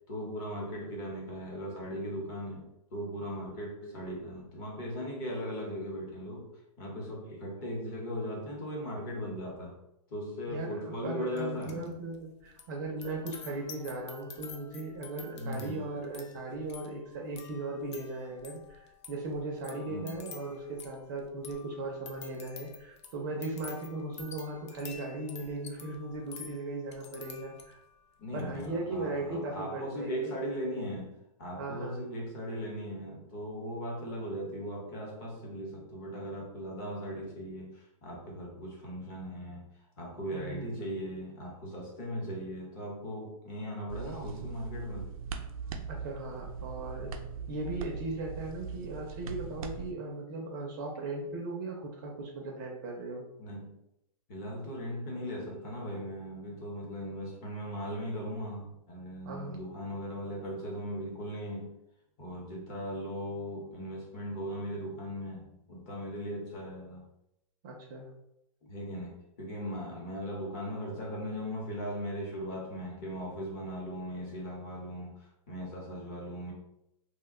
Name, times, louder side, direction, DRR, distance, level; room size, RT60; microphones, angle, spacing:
voice 1, 0.1-6.5 6.8-9.7 10.1-11.9 15.4-15.8 19.9-20.1 28.2-39.6 40.0-45.1 53.4-53.8 54.3-61.7 62.2-67.1 68.7-76.5, equal, 30° left, -2 dB, 0.9 m, -38 dB
voice 2, 10.5-27.8 28.3-30.3 31.6-32.0 40.3-40.8 45.9-47.1 47.5-53.3 59.2-59.6 67.6-68.1, right 2 dB, 35° right, 0 dB, 0.5 m, -38 dB
sound 1, 11.4-11.9 12.1-27.9 28.3-28.7, left 6 dB, 55° left, 0.5 m, -50 dB
sound 2, 43.9-49.9, right 5 dB, 90° right, 0.4 m, -40 dB
2.5 x 2.2 x 3.6 m, 0.83 s
supercardioid pair, 170°, 18 cm